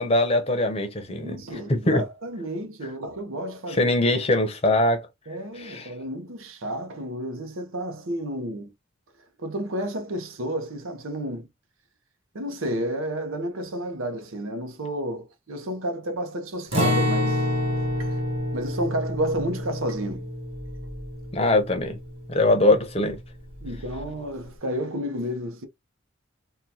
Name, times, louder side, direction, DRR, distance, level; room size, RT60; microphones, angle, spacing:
voice 1, 0.0-1.4 1.7-2.0 3.8-5.0 5.6-5.9 21.3-22.0 22.3-23.2, left 2 dB, 30° left, 0.7 m, -22 dB
voice 2, 1.1-3.9 5.3-8.7 9.4-11.5 12.3-17.4 18.0-18.2 18.5-20.2 23.6-25.7, right 1 dB, 90° right, 0.8 m, -31 dB
Acoustic guitar, 16.7-22.6 22.9-23.1 23.6-24.1, left 1 dB, 30° right, 1.1 m, -28 dB
3.7 x 2.3 x 2.8 m
head